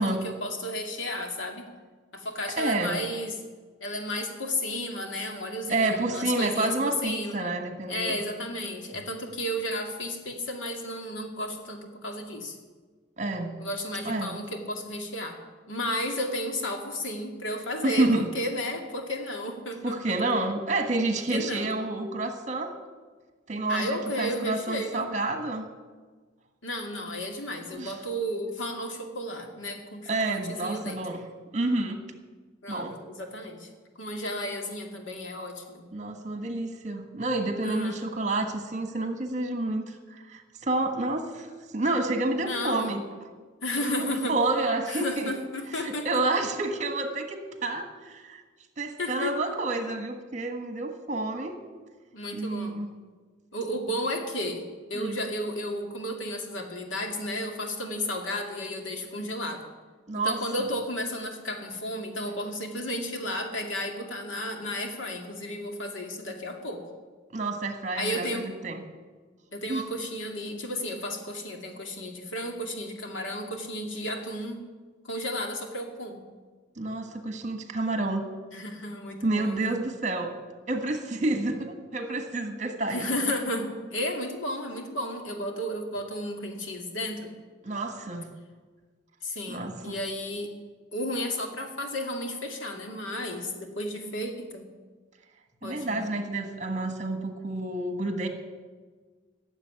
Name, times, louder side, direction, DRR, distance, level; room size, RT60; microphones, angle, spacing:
voice 1, 0.0-1.6 2.1-3.3 3.8-7.4 7.9-12.6 13.6-15.4 15.7-20.0 21.3-21.7 23.7-25.1 26.6-31.0 32.6-33.7 34.0-35.8 37.6-38.0 42.4-43.0 43.6-44.3 44.9-46.2 49.0-49.3 52.1-52.8 53.5-54.6 54.9-59.6 60.1-66.8 67.9-68.4 69.5-74.6 75.0-76.2 78.5-79.7 82.9-87.3 89.2-90.5 90.9-94.7 95.6-96.1, left 1 dB, 85° left, 3 dB, 2.3 m, -33 dB
voice 2, 2.6-3.0 5.7-8.2 13.2-13.5 14.0-14.4 17.8-18.3 19.8-22.7 23.5-25.7 27.8-27.9 30.1-31.3 31.5-32.0 32.7-33.0 35.9-43.0 43.8-45.3 45.7-48.4 48.8-51.6 52.3-52.9 54.9-55.2 60.1-60.7 67.3-68.8 69.7-69.8 76.8-78.3 79.2-80.3 80.7-83.1 87.6-88.3 89.5-90.0 95.6-98.3, right 2 dB, 40° right, 6 dB, 1.5 m, -29 dB
15.0 x 7.3 x 9.8 m, 1.4 s
head